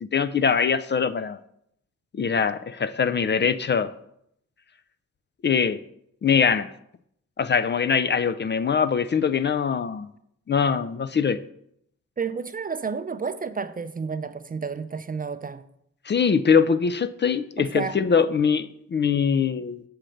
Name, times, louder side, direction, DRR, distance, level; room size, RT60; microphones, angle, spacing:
voice 1, 0.0-1.4 2.1-3.9 5.4-5.8 6.2-6.7 7.4-10.1 10.5-11.4 16.1-19.8, left 6 dB, 35° left, 0.4 m, -22 dB
voice 2, 12.2-15.6 17.6-18.3, right 5 dB, 30° right, 0.4 m, -31 dB
6.4 x 4.4 x 6.4 m
cardioid pair, 80°, 30 cm